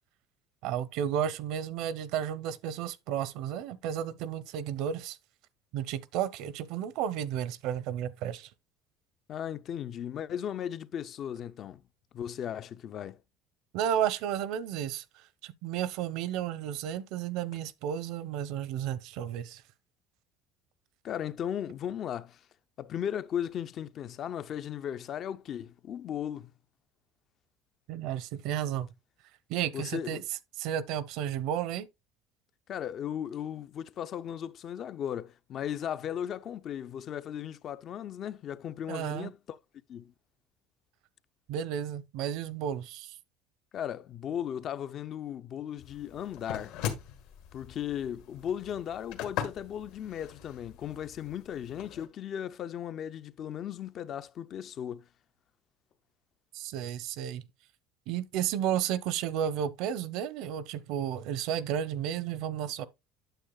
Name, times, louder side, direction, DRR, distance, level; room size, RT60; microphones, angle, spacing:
voice 1, 0.6-5.2 5.7-8.5 13.7-15.0 15.4-19.6 27.9-28.9 29.5-30.2 30.6-31.9 38.9-39.3 41.5-43.2 56.5-57.4 58.1-62.9, right 10 dB, 65° right, 0.7 m, -32 dB
voice 2, 9.3-11.8 12.1-13.2 21.0-22.4 22.8-26.5 29.7-30.2 32.7-39.6 39.9-40.1 43.7-46.7 47.5-55.1, left 9 dB, 40° left, 0.4 m, -36 dB
sound 1, 45.8-52.1, left 9 dB, 75° left, 1.5 m, -41 dB
9.0 x 7.4 x 2.3 m
cardioid pair, 140°, 0 cm